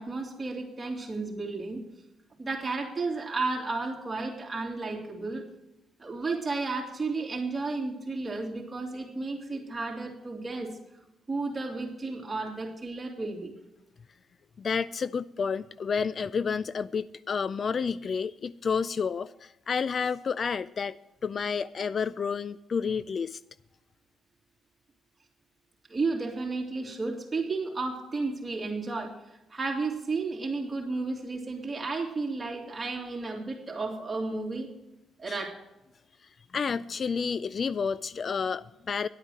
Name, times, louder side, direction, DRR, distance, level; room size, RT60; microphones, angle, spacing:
voice 1, 0.0-1.8 2.4-5.4 6.0-10.7 11.3-13.5 25.9-29.2 29.5-34.7 35.2-35.6, right 3 dB, 25° right, 3.0 m, -33 dB
voice 2, 14.6-20.9 21.2-23.4 35.3-35.4 36.5-39.1, left 6 dB, 45° left, 0.3 m, -30 dB
11.5 x 8.8 x 6.3 m
cardioid pair, 90°, 0 cm